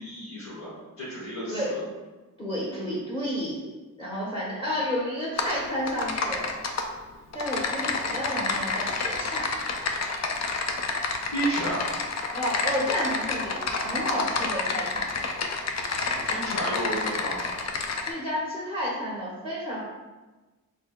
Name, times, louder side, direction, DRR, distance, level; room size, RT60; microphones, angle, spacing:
voice 1, 0.0-1.8 11.3-11.9 16.0-17.4, right 1 dB, 75° left, -9 dB, 1.3 m, -32 dB
voice 2, 2.4-3.7 4.0-6.5 7.3-9.5 12.3-15.1 18.0-19.8, equal, 15° left, -6 dB, 0.9 m, -31 dB
Typing, 5.4-5.5 5.9-6.8 7.3-18.1, left 4 dB, 50° left, 0.5 m, -29 dB
4.4 x 2.8 x 2.3 m, 1.2 s
cardioid pair, 65°, 34 cm